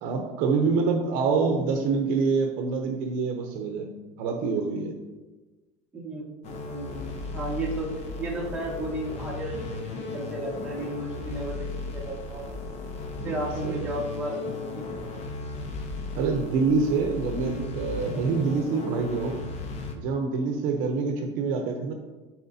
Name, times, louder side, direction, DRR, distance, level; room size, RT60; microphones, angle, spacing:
voice 1, 0.0-3.9 4.2-4.9 13.2-13.9 16.1-19.4 20.0-21.9, right 4 dB, 55° right, 4 dB, 0.8 m, -26 dB
voice 2, 5.9-6.3 6.6-7.9 8.2-12.4 13.2-15.3 17.4-17.8, right 1 dB, 5° right, -6 dB, 1.7 m, -34 dB
sound 1, 6.4-20.0, left 3 dB, 45° left, 0.9 m, -36 dB
12.5 x 4.3 x 2.7 m, 1.2 s
cardioid pair, 165°, 16 cm